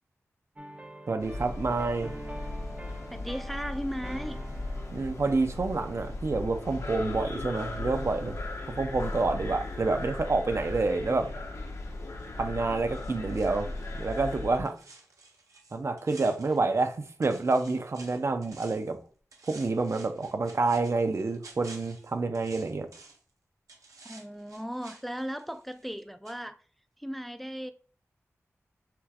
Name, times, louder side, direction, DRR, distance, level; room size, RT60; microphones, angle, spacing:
sound 1, 0.6-7.1 7.4-7.7, right 1 dB, 25° right, 0.8 m, -46 dB
voice 1, 1.1-2.1 4.9-8.4 8.7-11.3 12.3-13.7 13.9-14.8 15.7-19.0 19.5-22.9, right 3 dB, 55° right, 0.5 m, -28 dB
sound 2, 1.2-14.6, left 2 dB, 65° left, 0.8 m, -37 dB
voice 2, 3.1-4.4 24.0-26.6 27.0-27.7, equal, ahead, 0.3 m, -36 dB
sound 3, 12.9-16.9 17.2-18.9 19.3-23.3 23.7-26.0 26.2-26.4, right 3 dB, 85° right, 0.8 m, -52 dB
5.8 x 3.3 x 2.4 m
cardioid pair, 50°, 6 cm